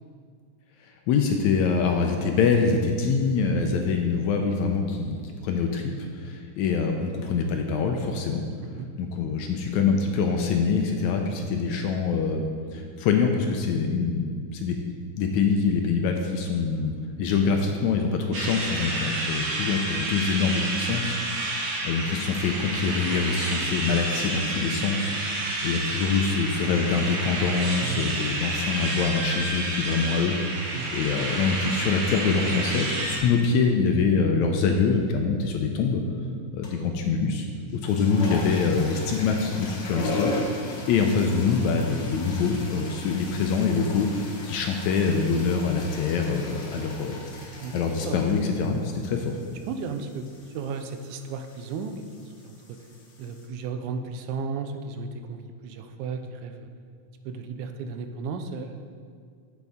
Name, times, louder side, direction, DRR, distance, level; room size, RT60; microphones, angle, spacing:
voice 1, 0.8-8.4 9.0-12.4 12.7-14.7 15.2-16.9 17.2-30.3 30.9-36.0 36.5-37.5 37.7-40.4 40.9-47.2 47.7-49.4, left 5 dB, 80° left, 3 dB, 1.8 m, -25 dB
sound 1, 18.3-33.2, right 2 dB, 60° right, 1.8 m, -30 dB
voice 2, 27.8-28.2 30.7-31.0 38.7-38.9 47.6-48.2 49.7-52.8 53.2-56.7 57.3-58.8, right 5 dB, 80° right, 7 dB, 1.9 m, -35 dB
sound 2, 36.6-37.0 37.6-53.5, left 2 dB, 50° left, 1.5 m, -38 dB
9.2 x 8.1 x 3.6 m, 2.1 s
omnidirectional pair, 3.7 m